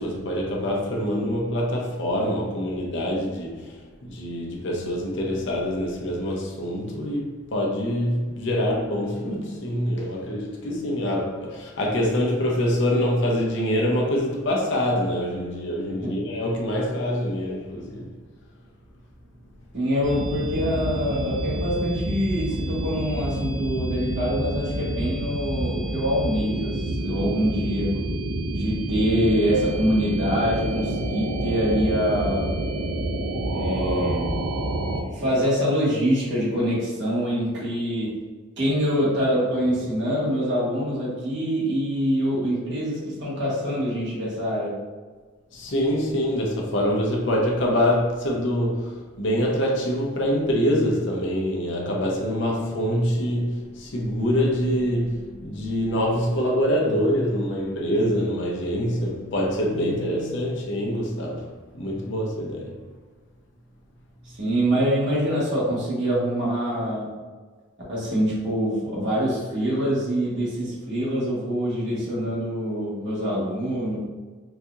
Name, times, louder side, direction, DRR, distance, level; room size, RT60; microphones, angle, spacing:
voice 1, 0.0-18.1 45.5-62.8, equal, 60° left, 0.7 m, -25 dB
voice 2, 19.7-28.0 28.5-32.5 33.5-34.4 34.9-38.2 38.6-44.8 64.2-67.2 67.9-74.0, equal, 55° right, 1.4 m, -25 dB
sound 1, 20.0-35.0, right 1 dB, 85° right, 0.5 m, -28 dB
4.1 x 2.7 x 2.4 m
head